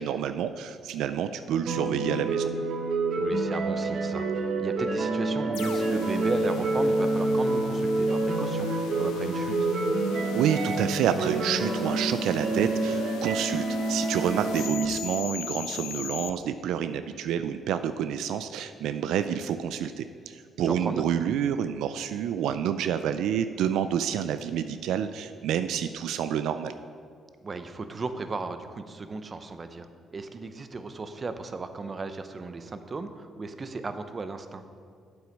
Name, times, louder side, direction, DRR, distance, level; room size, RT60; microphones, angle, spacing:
voice 1, 0.0-2.5 10.3-26.7, right 9 dB, 85° right, 11 dB, 0.3 m, -28 dB
sound 1, 1.6-14.9, right 2 dB, 65° right, 1.0 m, -28 dB
voice 2, 3.2-9.7 20.6-21.0 27.4-34.6, right 3 dB, 35° right, 9 dB, 0.7 m, -35 dB
sound 2, 5.5-16.3, left 8 dB, 85° left, 0.5 m, -38 dB
8.4 x 7.9 x 5.2 m, 2.2 s
cardioid pair, 90°, 0 cm